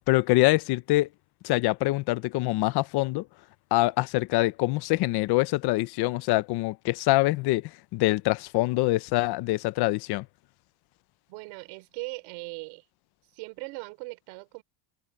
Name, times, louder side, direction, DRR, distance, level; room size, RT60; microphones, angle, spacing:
voice 1, 0.1-1.1 1.4-3.3 3.7-10.3, left 19 dB, 55° left, 0.8 m, -24 dB
voice 2, 11.3-12.8 13.3-14.6, right 28 dB, 75° right, 3.6 m, -39 dB
cardioid pair, 140°, 47 cm